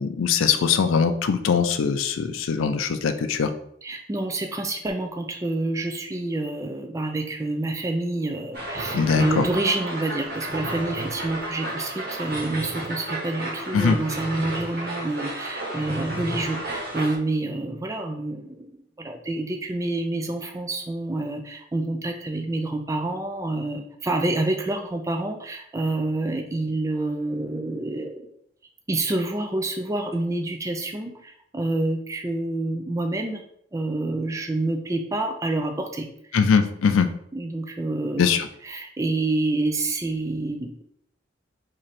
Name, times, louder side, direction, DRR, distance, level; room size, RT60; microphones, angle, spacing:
voice 1, 0.0-3.5 8.9-9.5 13.7-14.0 36.3-37.1 38.2-38.5, left 6 dB, 85° left, 9 dB, 0.4 m, -21 dB
voice 2, 3.8-28.2 28.9-33.4 33.7-36.1 37.3-38.3 38.6-40.7, right 2 dB, 15° right, 5 dB, 0.3 m, -28 dB
sound 1, 8.5-17.2, right 1 dB, 50° right, 1.3 m, -32 dB
3.2 x 2.6 x 4.0 m, 0.71 s
head